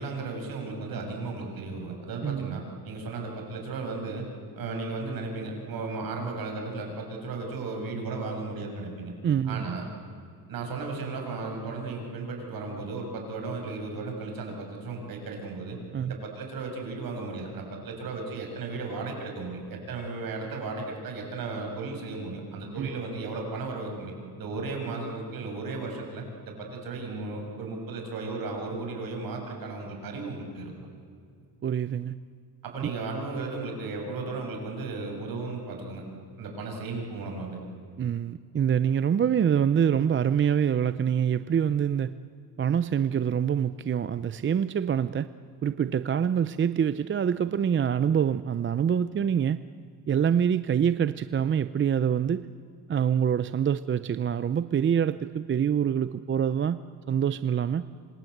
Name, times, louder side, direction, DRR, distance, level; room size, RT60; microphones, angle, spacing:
voice 1, 0.0-4.3 4.6-9.1 9.4-9.8 10.5-15.8 16.0-30.7 32.6-36.0 36.4-37.6, right 3 dB, 60° right, 2 dB, 7.4 m, -35 dB
voice 2, 2.2-2.6 9.2-9.7 15.9-16.1 22.8-23.0 31.6-32.2 32.8-32.9 38.0-42.1 42.6-45.3 45.6-49.6 50.1-52.5 52.9-56.8 57.1-57.8, right 8 dB, 30° right, 14 dB, 0.6 m, -25 dB
27.0 x 26.5 x 8.0 m, 2.3 s
cardioid pair, 120°, 39 cm